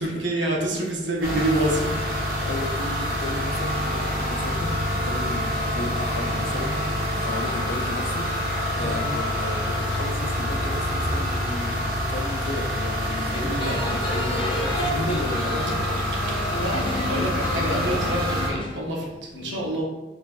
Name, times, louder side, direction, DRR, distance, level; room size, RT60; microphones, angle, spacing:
voice 1, 0.0-1.9 8.8-9.1 13.4-13.8 14.2-14.7 16.6-19.8, right 1 dB, 70° right, -1 dB, 0.7 m, -27 dB
sound 1, 1.2-18.5, equal, 55° right, 1.0 m, -26 dB
voice 2, 1.6-2.0 2.4-6.8 7.2-8.3 8.7-15.9 19.3-19.6, left 2 dB, 85° left, 4 dB, 0.5 m, -34 dB
sound 2, 13.1-18.8, left 1 dB, 30° left, 0.4 m, -31 dB
4.3 x 2.5 x 2.4 m, 1.1 s
head